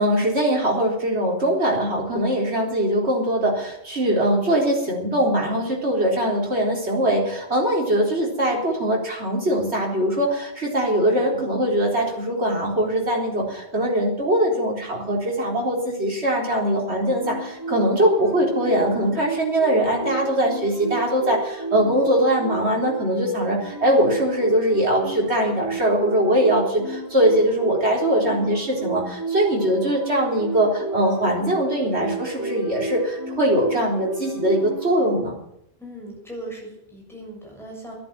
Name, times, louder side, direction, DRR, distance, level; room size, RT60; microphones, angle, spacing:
voice 1, 0.0-35.4, right 1 dB, 70° right, -1 dB, 4.3 m, -21 dB
sound 1, 17.1-35.2, right 4 dB, 15° right, 3.6 m, -33 dB
voice 2, 35.8-37.9, right 1 dB, ahead, -2 dB, 6.9 m, -38 dB
12.5 x 11.0 x 8.9 m, 0.76 s
omnidirectional pair, 1.2 m